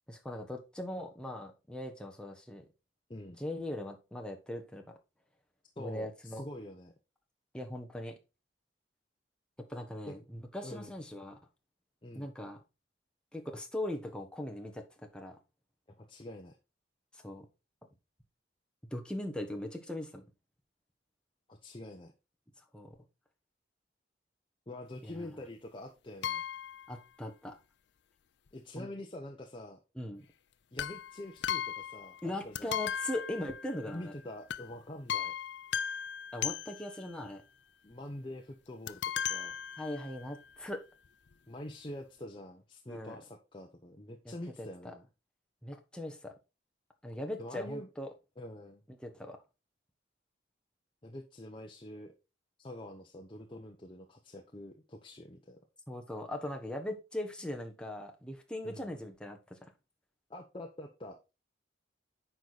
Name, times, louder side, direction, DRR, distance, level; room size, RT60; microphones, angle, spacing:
voice 1, 0.1-2.6 3.4-4.9 5.8-6.4 7.5-8.1 9.6-11.4 12.1-12.6 13.3-14.8 15.1-15.4 17.2-17.5 18.9-20.2 22.7-22.9 25.0-25.4 26.9-27.6 28.8-28.9 30.0-30.2 32.2-34.1 36.3-37.4 39.8-40.8 42.9-43.2 44.2-44.3 44.6-44.7 45.6-46.3 47.0-48.1 48.9-49.4 55.9-59.6, left 1 dB, 5° left, 2 dB, 1.2 m, -40 dB
voice 2, 5.8-6.9 10.1-10.2 10.6-11.0 12.0-12.3 16.0-16.6 21.5-22.1 24.7-26.4 28.5-29.8 30.7-32.7 33.9-35.3 37.8-39.6 41.5-45.1 47.4-47.9 48.4-48.8 51.0-52.1 52.6-55.6 58.6-58.9 60.3-61.3, left 1 dB, 25° left, 2 dB, 0.8 m, -45 dB
sound 1, 26.2-27.0 30.8-32.3 32.5-34.0 34.5-34.7 35.1-37.1 38.9-40.3 41.0-41.1 41.3-41.4, left 9 dB, 65° left, 0.4 m, -37 dB
9.0 x 4.9 x 4.0 m, 0.29 s
head